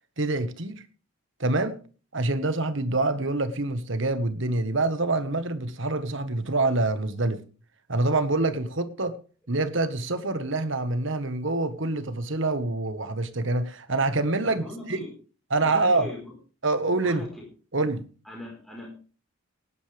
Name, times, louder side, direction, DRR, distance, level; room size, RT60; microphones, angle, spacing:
voice 1, 0.2-0.7 1.4-1.8 2.1-7.4 7.9-9.2 9.5-14.6 14.9-15.0 15.5-16.1 16.6-17.2 17.7-18.0, right 2 dB, 60° right, 1.5 m, -26 dB
voice 2, 14.5-15.1 15.6-16.3 17.0-17.5 18.2-18.9, left 1 dB, ahead, 4.5 m, -39 dB
18.5 x 11.0 x 3.5 m
head